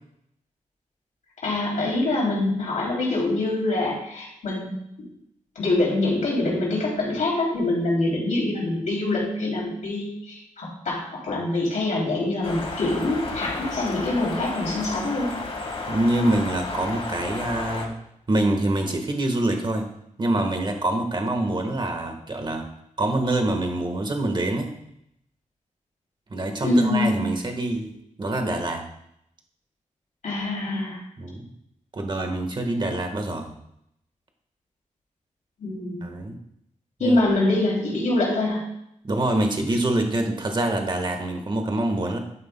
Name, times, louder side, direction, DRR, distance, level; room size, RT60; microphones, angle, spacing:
voice 1, 1.4-5.1 5.5-15.3 26.6-27.1 30.2-31.0 35.6-36.2 37.0-38.6, left 2 dB, 75° left, -4 dB, 3.1 m, -25 dB
sound 1, 12.4-17.9, left 3 dB, 45° left, 1.6 m, -32 dB
voice 2, 15.9-17.9 18.3-19.9 20.2-22.7 23.0-24.7 26.3-27.9 28.2-28.8 31.2-31.5 31.9-33.5 36.0-36.3 37.0-37.2 39.0-42.2, right 1 dB, 35° right, 4 dB, 1.4 m, -25 dB
11.5 x 9.5 x 2.2 m, 0.77 s
wide cardioid pair, 110°, 13 cm